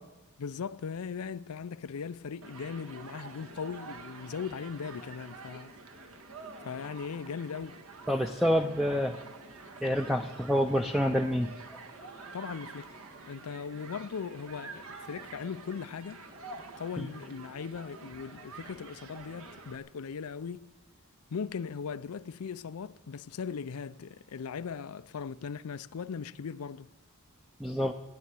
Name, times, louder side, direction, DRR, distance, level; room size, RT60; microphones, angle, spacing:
voice 1, 0.4-5.7 6.6-7.8 12.3-12.9 13.3-16.2 16.8-20.6 21.3-26.9, left 6 dB, 80° left, 0.5 m, -39 dB
Human group actions, 2.4-19.8, right 3 dB, 70° right, 1.6 m, -48 dB
voice 2, 8.1-9.2 9.8-11.5 17.0-17.1 27.6-27.9, equal, ahead, 0.6 m, -27 dB
17.0 x 10.5 x 8.2 m
head